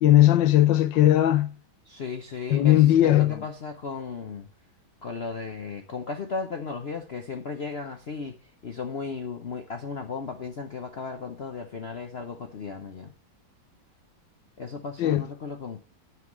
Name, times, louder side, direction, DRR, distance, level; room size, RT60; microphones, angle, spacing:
voice 1, 0.0-1.5 2.5-3.4 15.0-15.2, left 13 dB, 80° left, 1.4 m, -18 dB
voice 2, 1.9-4.5 5.0-8.3 8.6-13.1 14.6-15.8, left 5 dB, 55° left, 0.7 m, -35 dB
9.4 x 4.7 x 7.2 m
omnidirectional pair, 2.1 m